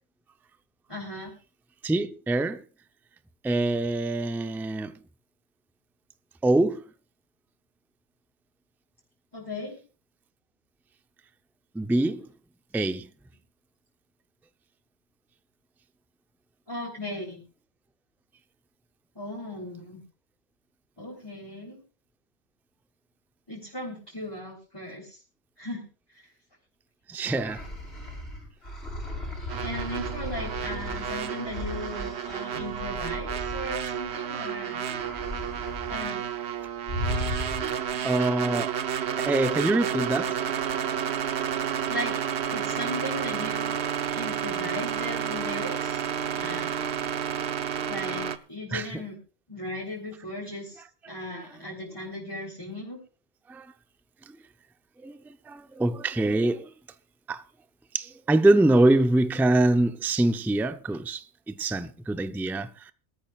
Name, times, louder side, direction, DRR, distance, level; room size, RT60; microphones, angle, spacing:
voice 1, 0.9-1.3 9.3-9.8 16.7-17.4 19.2-20.0 21.0-21.8 23.5-25.2 25.6-25.9 29.6-34.9 35.9-36.3 37.6-38.6 41.9-42.2 42.5-43.8 44.1-46.0 46.3-46.8 47.9-49.2 49.5-53.0, left 1 dB, 20° left, 3.5 m, -37 dB
voice 2, 1.8-2.6 3.4-5.0 6.4-6.8 11.7-12.3 12.7-13.1 27.1-27.6 38.0-38.8 39.2-40.4 48.7-49.0 53.5-53.7 54.2-54.4 55.0-56.7 57.3-57.4 57.9-62.9, right 2 dB, 5° right, 0.4 m, -25 dB
sound 1, 27.2-34.4 34.8-36.1 36.3-36.5 36.9-38.0, left 1 dB, 70° left, 6.6 m, -36 dB
sound 2, 29.5-48.4, right 9 dB, 75° right, 1.1 m, -31 dB
22.5 x 13.5 x 2.4 m
omnidirectional pair, 1.1 m